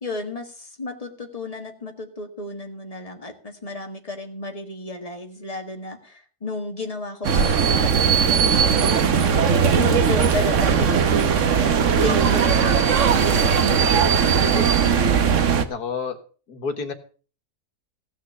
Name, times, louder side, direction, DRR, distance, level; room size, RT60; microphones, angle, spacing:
voice 1, 0.0-9.4 9.8-14.7, left 2 dB, 25° left, 5 dB, 1.8 m, -33 dB
sound 1, 7.2-15.7, right 6 dB, 55° right, 1.3 m, -18 dB
voice 2, 14.8-16.2 16.5-16.9, left 5 dB, 80° left, 7 dB, 2.0 m, -31 dB
16.0 x 6.4 x 7.0 m, 0.39 s
omnidirectional pair, 1.6 m